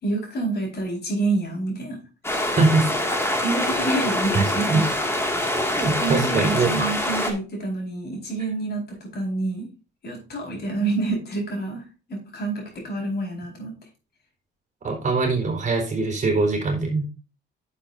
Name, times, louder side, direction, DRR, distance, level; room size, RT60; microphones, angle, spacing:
voice 1, 0.0-2.0 3.4-4.8 6.0-9.7 10.0-11.8 12.1-13.7, right 2 dB, 55° left, 1 dB, 4.5 m, -28 dB
sound 1, 2.2-7.3, left 1 dB, 10° left, 2.1 m, -25 dB
voice 2, 2.6-2.9 4.3-4.4 4.7-4.8 5.8-6.9 14.8-17.0, right 3 dB, 40° right, 2 dB, 4.1 m, -22 dB
10.0 x 7.2 x 2.6 m, 0.32 s
cardioid pair, 90°, 20 cm